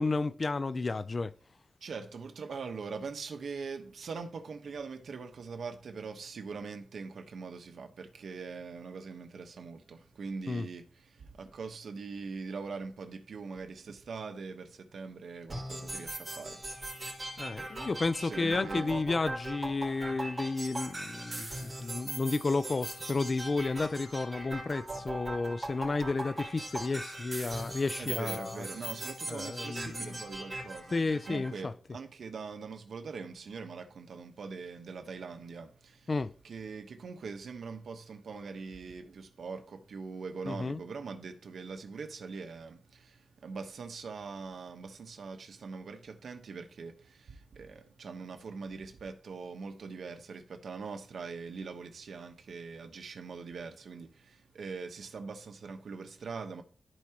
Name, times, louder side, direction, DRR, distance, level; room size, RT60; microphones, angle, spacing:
voice 1, 0.0-1.3 10.5-10.7 17.4-28.6 29.3-30.2 30.9-31.7 36.1-36.3 40.5-40.8, left 3 dB, 35° left, 0.4 m, -32 dB
voice 2, 1.8-16.8 17.5-17.6 18.2-19.1 28.0-36.1 36.4-56.6, right 4 dB, 75° right, 1.1 m, -42 dB
sound 1, 15.5-31.5, right 1 dB, 20° right, 3.8 m, -40 dB
14.5 x 4.8 x 2.9 m
wide cardioid pair, 125°, 0 cm